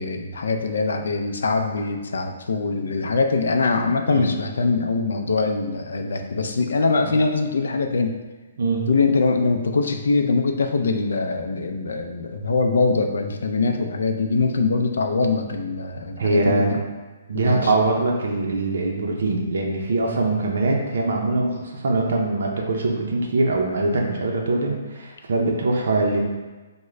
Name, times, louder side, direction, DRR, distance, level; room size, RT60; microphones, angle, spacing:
voice 1, 0.0-8.1 8.9-16.9 17.3-17.7, left 3 dB, 80° left, 4 dB, 0.4 m, -23 dB
voice 2, 8.6-8.9 16.2-16.8 17.3-26.2, right 2 dB, 65° right, 0 dB, 0.5 m, -22 dB
3.6 x 2.1 x 3.2 m, 1.2 s
hypercardioid pair, 175°, 0 cm